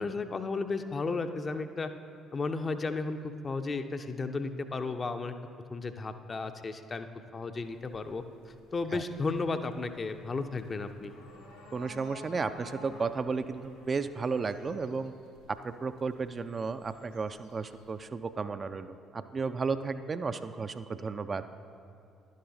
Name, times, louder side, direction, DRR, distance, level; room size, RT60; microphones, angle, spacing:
voice 1, 0.0-1.9 2.3-5.3 5.7-7.1 7.3-11.1, left 3 dB, 35° left, 8 dB, 0.5 m, -34 dB
sound 1, 7.6-18.0, equal, 85° left, 1.1 m, -54 dB
voice 2, 11.7-15.1 15.5-21.4, right 4 dB, 35° right, 10 dB, 0.3 m, -33 dB
11.0 x 10.0 x 2.7 m, 2.5 s
figure-of-eight pair, 50°, 0 cm